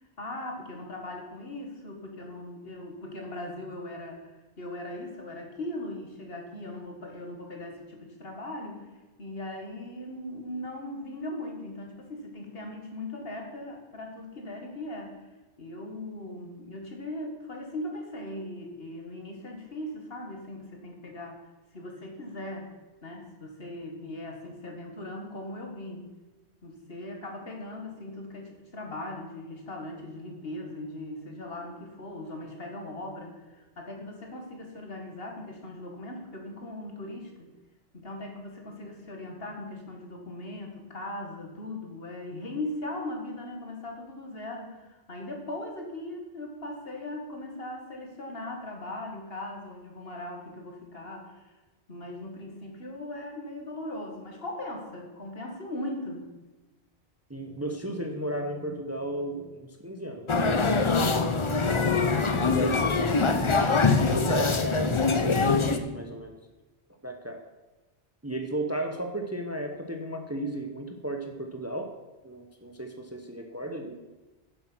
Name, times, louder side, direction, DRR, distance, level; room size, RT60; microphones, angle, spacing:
voice 1, 0.2-8.9 9.2-15.3 15.6-21.4 21.7-22.7 23.0-26.1 26.6-37.5 37.9-51.5 51.9-56.3, left 1 dB, 60° left, 2 dB, 2.1 m, -39 dB
voice 2, 57.3-63.6 64.0-66.3 67.0-67.4 68.2-71.9 72.2-74.0, right 1 dB, 15° right, 4 dB, 0.9 m, -35 dB
sound 1, 60.3-65.8, left 4 dB, 30° left, 0.7 m, -23 dB
10.0 x 7.8 x 6.1 m, 1.2 s
omnidirectional pair, 1.1 m